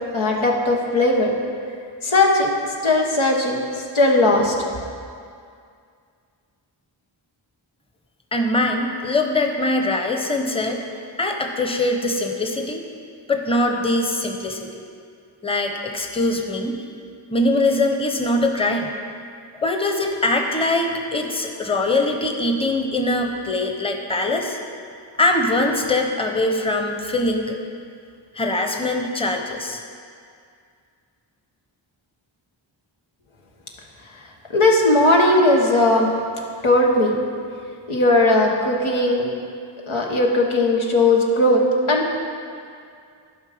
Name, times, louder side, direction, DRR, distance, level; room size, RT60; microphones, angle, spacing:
voice 1, 0.1-1.3 2.0-2.5 2.8-3.6 3.9-4.5 34.5-36.1 36.6-37.2 37.9-39.3 39.9-41.6 41.9-42.2, left 2 dB, 80° left, -1 dB, 1.3 m, -17 dB
voice 2, 8.3-10.8 11.2-12.8 13.3-14.8 15.4-16.8 17.3-18.9 19.6-24.6 25.2-27.6 28.3-29.8, left 2 dB, 10° left, 3 dB, 0.9 m, -22 dB
11.5 x 5.5 x 5.1 m, 2.3 s
cardioid pair, 45°, 48 cm